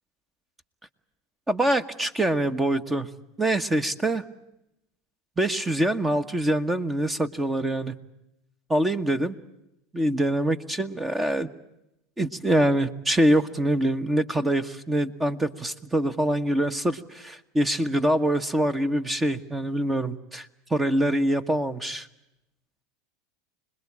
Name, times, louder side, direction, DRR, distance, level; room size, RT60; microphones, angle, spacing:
voice 1, 1.5-3.1 3.4-4.2 5.4-7.9 8.7-9.3 9.9-11.5 12.2-22.1, right 1 dB, 15° right, 12 dB, 1.4 m, -24 dB
26.0 x 21.0 x 8.7 m, 0.86 s
hypercardioid pair, 95°, 0 cm